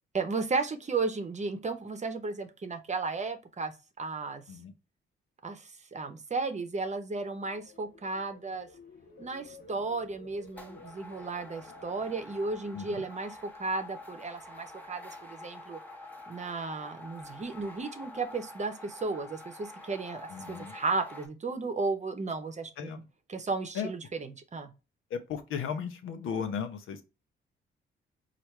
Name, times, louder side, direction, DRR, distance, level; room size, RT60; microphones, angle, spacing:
voice 1, 0.1-4.4 5.4-8.7 9.2-15.8 16.3-22.9 23.3-24.7, right 3 dB, 35° right, 0.8 m, -34 dB
sound 1, 7.0-14.2 14.6-14.9, left 3 dB, 45° left, 1.1 m, -54 dB
sound 2, 9.7-10.0 10.5-21.3, left 2 dB, 10° left, 0.9 m, -47 dB
voice 2, 20.3-20.7 22.8-23.0 23.7-23.9 25.1-27.0, left 7 dB, 85° left, 0.7 m, -35 dB
4.5 x 2.5 x 3.1 m
cardioid pair, 70°, 20 cm